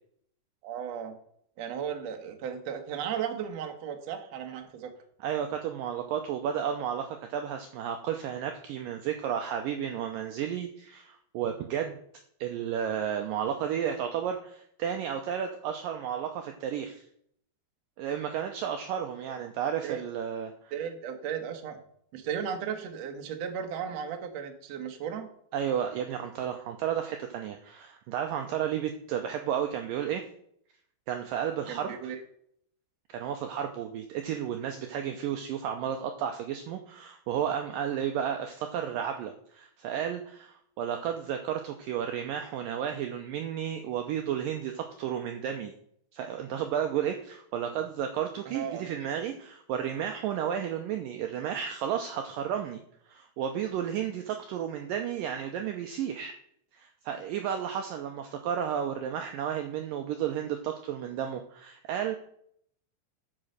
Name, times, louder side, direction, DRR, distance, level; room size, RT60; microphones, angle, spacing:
voice 1, 0.6-1.2 1.6-4.9 19.8-20.0 20.7-21.8 22.1-25.3 31.7-32.2 48.5-48.9, right 8 dB, 70° right, 5 dB, 1.6 m, -35 dB
voice 2, 5.2-12.0 12.4-17.0 18.0-20.7 25.5-30.2 31.1-32.0 33.1-45.7 46.1-52.8 53.1-56.3 56.7-62.2, right 9 dB, 85° right, 5 dB, 1.9 m, -32 dB
8.8 x 6.2 x 6.5 m, 0.66 s
omnidirectional pair, 4.9 m